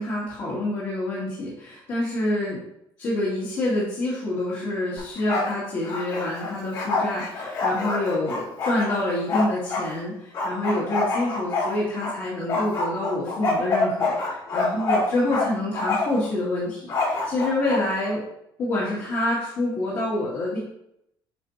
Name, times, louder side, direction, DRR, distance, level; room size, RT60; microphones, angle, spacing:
voice 1, 0.0-2.6 3.0-18.2 18.6-20.6, left 1 dB, 45° left, -7 dB, 2.1 m, -27 dB
Bark, 5.0-5.6 5.8-9.9 10.3-12.1 12.5-15.5 15.7-16.2 16.9-17.8, left 3 dB, 60° left, 2.7 m, -26 dB
9.1 x 4.7 x 2.7 m, 0.79 s
cardioid pair, 175°, 9 cm